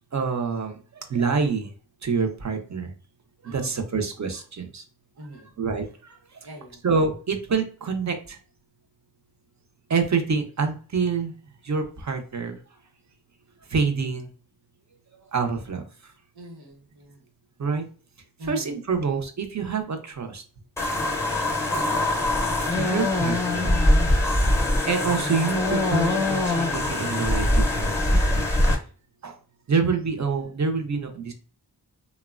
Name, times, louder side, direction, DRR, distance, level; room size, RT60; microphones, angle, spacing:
voice 1, 0.1-1.7 2.0-2.9 3.4-4.8 5.6-6.2 6.8-8.4 9.9-11.3 11.6-12.6 13.7-14.3 15.3-15.8 17.6-17.8 18.4-20.4 22.7-23.8 24.9-28.5 29.2-29.4 29.7-31.3, right 5 dB, 45° right, 5 dB, 0.6 m, -26 dB
voice 2, 3.4-4.0 5.2-5.5 6.4-6.8 12.7-12.8 16.3-17.2 18.4-18.8, equal, 65° right, 1 dB, 0.9 m, -42 dB
sound 1, 20.8-28.7, left 1 dB, 5° left, 0.6 m, -23 dB
3.0 x 2.1 x 2.4 m, 0.40 s
wide cardioid pair, 70°, 40 cm